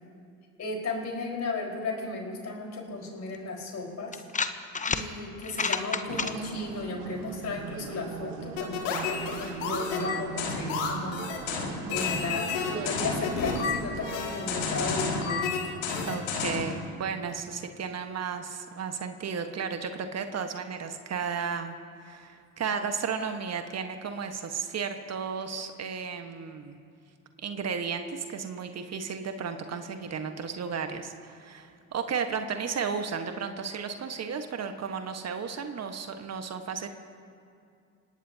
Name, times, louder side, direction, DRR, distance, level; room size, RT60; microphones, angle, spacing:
voice 1, 0.6-4.2 4.8-11.3 11.9-15.7, left 3 dB, 45° left, -1 dB, 4.7 m, -35 dB
sound 1, 3.3-3.4 4.1-5.0 5.4-6.3, left 4 dB, 20° left, 1.1 m, -29 dB
sound 2, 6.1-15.1, right 7 dB, 65° right, 1.8 m, -40 dB
sound 3, 8.6-16.7, left 5 dB, 80° left, 2.6 m, -31 dB
voice 2, 11.8-12.5 16.1-21.7 22.0-26.8 27.4-36.9, right 6 dB, 40° right, 6 dB, 1.4 m, -34 dB
27.0 x 18.0 x 2.9 m, 2.4 s
hypercardioid pair, 60°, 38 cm